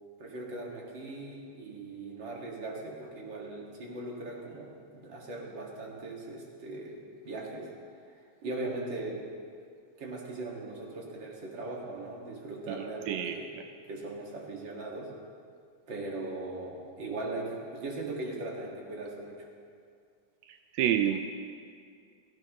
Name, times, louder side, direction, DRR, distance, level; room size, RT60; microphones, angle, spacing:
voice 1, 0.2-7.0 7.2-7.7 8.4-9.2 10.0-13.6 13.9-15.1 15.9-19.5, right 2 dB, 40° right, -2 dB, 2.2 m, -39 dB
voice 2, 12.7-13.4 20.5-21.3, right 10 dB, 85° right, 7 dB, 1.6 m, -29 dB
16.5 x 15.5 x 3.1 m, 2.3 s
omnidirectional pair, 3.6 m